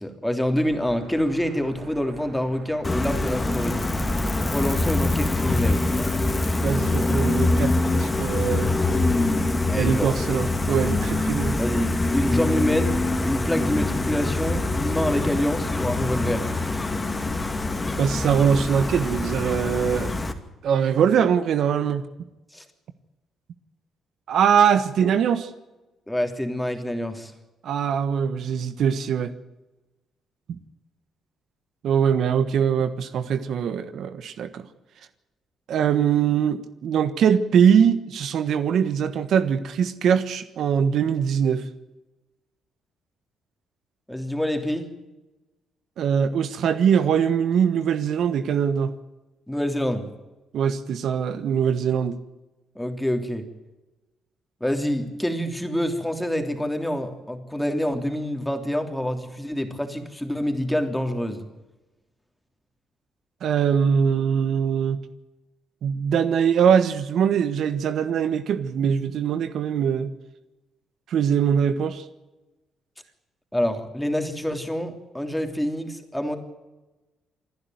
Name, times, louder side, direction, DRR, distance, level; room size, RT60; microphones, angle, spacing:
voice 1, 0.0-3.8 4.4-5.9 9.7-10.2 11.6-16.5 22.5-22.6 25.0-25.1 26.1-27.3 44.1-44.9 49.5-50.1 52.7-53.4 54.6-61.5 73.5-76.4, equal, 5° left, 5 dB, 3.2 m, -26 dB
sound 1, 0.6-5.7, right 4 dB, 90° right, 6.3 m, -46 dB
Gull seagull, 2.8-20.3, left 2 dB, 20° left, 2.4 m, -24 dB
voice 2, 6.6-8.7 9.8-11.6 18.0-20.1 20.6-22.1 24.3-25.5 27.6-29.3 30.5-30.6 31.8-34.6 35.7-41.7 46.0-49.0 50.5-52.2 63.4-65.0 65.8-70.1 71.1-72.0, right 7 dB, 70° right, 12 dB, 1.3 m, -22 dB
27.5 x 11.0 x 9.3 m, 1.1 s
cardioid pair, 90°, 0 cm